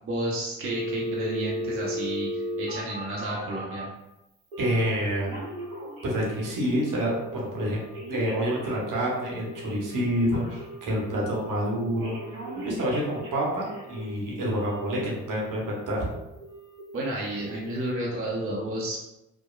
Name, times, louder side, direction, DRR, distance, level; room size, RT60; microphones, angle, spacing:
voice 1, 0.0-3.9 16.9-19.0, right 1 dB, 35° right, -4 dB, 0.7 m, -31 dB
Telephone, 0.6-3.9 4.5-4.9 5.2-6.5 6.8-7.2 7.6-11.0 11.3-11.7 12.0-14.1 14.4-15.3 15.7-16.0 16.4-16.8 17.2-17.5 17.9-18.0, equal, 85° right, 0.8 m, -36 dB
voice 2, 4.6-5.4 6.0-7.8 8.1-12.2 12.6-16.0, equal, 60° right, -3 dB, 0.9 m, -28 dB
2.9 x 2.0 x 2.3 m, 0.92 s
hypercardioid pair, 45°, 37 cm